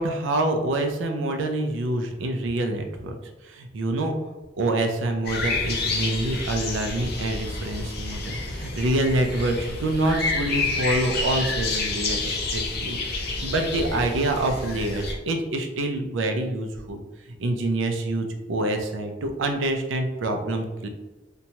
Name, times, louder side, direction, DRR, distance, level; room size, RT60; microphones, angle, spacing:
voice 1, 0.0-3.2 3.4-4.1 4.5-17.0 17.4-20.9, right 1 dB, 90° right, 4 dB, 0.4 m, -26 dB
sound 1, 5.2-15.1, left 3 dB, 60° left, 0.5 m, -29 dB
2.8 x 2.2 x 2.7 m, 1.1 s
head